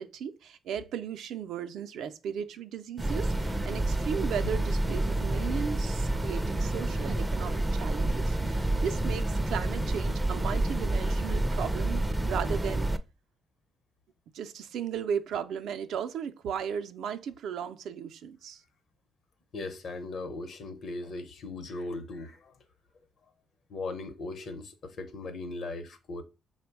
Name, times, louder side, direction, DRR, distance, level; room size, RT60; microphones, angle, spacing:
voice 1, 0.0-12.9 14.3-18.6, right 8 dB, 75° right, 0.4 m, -36 dB
sound 1, 3.0-13.0, right 1 dB, 10° right, 0.4 m, -29 dB
voice 2, 19.5-22.6 23.7-26.2, left 2 dB, 60° left, 0.8 m, -38 dB
5.1 x 2.2 x 4.5 m
cardioid pair, 90°, 0 cm